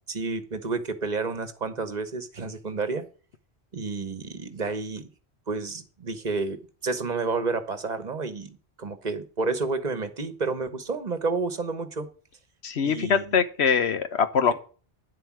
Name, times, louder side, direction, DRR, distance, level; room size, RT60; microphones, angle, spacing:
voice 1, 0.1-3.0 3.7-5.1 5.5-12.1 12.8-13.4, right 4 dB, 45° right, 10 dB, 1.3 m, -30 dB
voice 2, 12.6-14.5, left 6 dB, 80° left, 11 dB, 1.2 m, -23 dB
10.0 x 7.9 x 6.1 m, 0.39 s
omnidirectional pair, 1.1 m